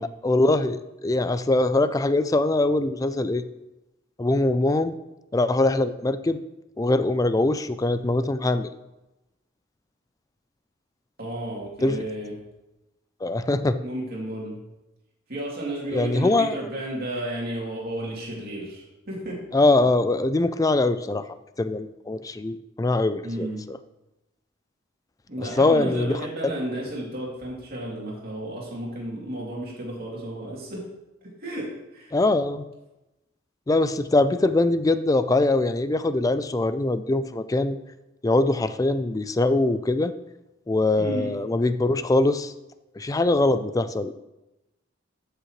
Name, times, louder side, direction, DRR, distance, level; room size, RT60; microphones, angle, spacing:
voice 1, 0.2-3.4 4.2-4.9 5.3-6.4 6.8-8.7 11.8-12.0 13.2-13.8 15.9-16.6 19.5-21.3 21.6-23.8 25.4-26.2 32.1-32.7 33.7-37.8 38.2-40.1 40.7-42.5 43.0-44.2, left 2 dB, 20° left, 12 dB, 0.3 m, -22 dB
voice 2, 11.2-12.3 13.8-14.6 15.3-19.4 23.2-23.6 25.3-30.9 31.2-32.1 41.0-41.3, right 1 dB, 50° right, -3 dB, 2.7 m, -33 dB
13.5 x 6.6 x 3.1 m, 0.98 s
head